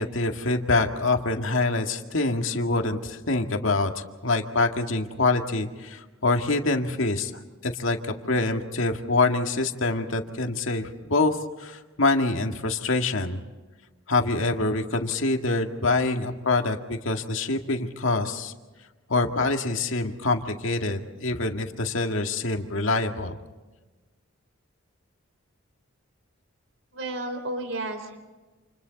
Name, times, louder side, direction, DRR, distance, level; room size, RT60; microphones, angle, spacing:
voice 1, 0.0-13.4 14.1-18.5 19.1-23.4, left 3 dB, 70° left, 4 dB, 2.1 m, -25 dB
voice 2, 26.9-28.2, right 1 dB, 70° right, 7 dB, 4.1 m, -32 dB
29.5 x 28.5 x 4.1 m, 1.2 s
head